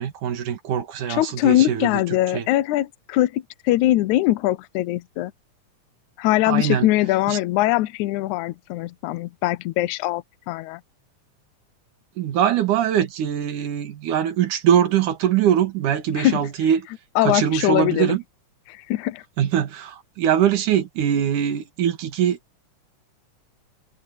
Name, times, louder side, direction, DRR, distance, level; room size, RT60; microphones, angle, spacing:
voice 1, 0.0-2.0 2.3-2.5 6.5-6.9 7.3-7.4 12.2-16.9 17.2-18.2 19.4-22.4, right 9 dB, 80° right, 3.3 m, -22 dB
voice 2, 1.1-5.3 6.2-10.8 16.1-16.4 17.2-18.2 18.7-19.2, left 15 dB, 80° left, 2.0 m, -22 dB
omnidirectional pair, 3.5 m